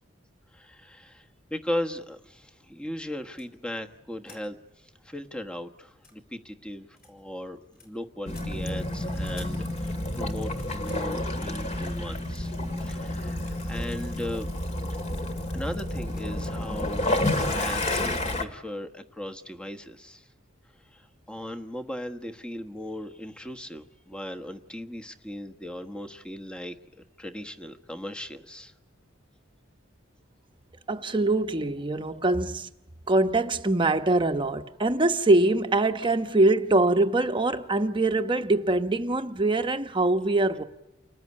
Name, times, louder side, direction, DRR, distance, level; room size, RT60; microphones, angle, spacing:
voice 1, 0.5-12.5 12.8-14.5 15.5-20.3 20.9-26.8 27.2-28.7, left 1 dB, 5° left, 1.3 m, -38 dB
sound 1, 3.3-3.5 4.2-4.4 4.8-4.9 5.2-5.3 5.9-6.2 6.9-7.1 7.4-7.9 8.3-8.5 9.1-9.6 10.2-11.1 12.1-12.2 13.0-13.6 13.8-14.3 14.8-15.0 15.6-15.8 16.0-16.2, left 4 dB, 50° left, 7.2 m, -52 dB
Waves surf / Splash splatter / Trickle dribble, 8.3-18.4, left 1 dB, 35° left, 2.2 m, -30 dB
voice 2, 30.9-32.7 33.1-40.6, right 2 dB, 25° right, 1.1 m, -23 dB
29.5 x 20.0 x 9.7 m
head